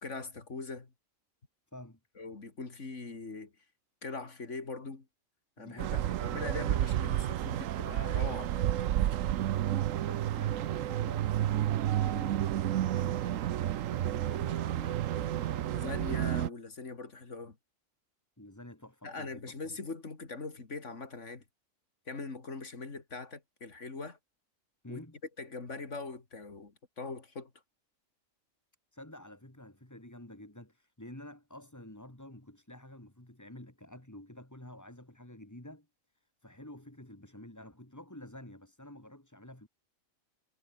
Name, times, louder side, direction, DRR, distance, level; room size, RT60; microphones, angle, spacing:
voice 1, 0.0-0.9 2.2-3.5 4.0-5.1 5.6-5.9 6.2-9.0 15.7-17.6 19.0-21.4 22.1-24.2 24.9-25.0 25.4-27.5, left 3 dB, 65° left, 3.0 m, -41 dB
voice 2, 5.6-6.2 9.8-15.9 18.4-19.6 24.8-25.2 28.9-35.9 36.1-39.7, left 1 dB, 15° left, 2.8 m, -49 dB
sound 1, 5.8-16.5, right 12 dB, 85° right, 1.1 m, -31 dB
omnidirectional pair, 1.3 m